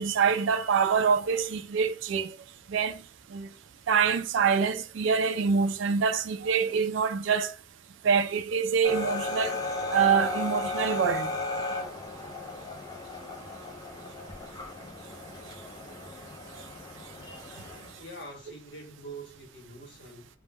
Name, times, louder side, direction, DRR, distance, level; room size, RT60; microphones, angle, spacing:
voice 1, 0.0-2.3 2.7-3.0 3.3-3.5 3.9-7.5 8.0-9.6 9.9-11.3 16.5-16.6, right 6 dB, 70° right, 0.3 m, -25 dB
sound 1, 8.8-18.0, left 2 dB, 20° left, 0.5 m, -35 dB
voice 2, 18.0-20.3, right 2 dB, 65° left, 0.9 m, -44 dB
2.2 x 2.0 x 3.3 m
head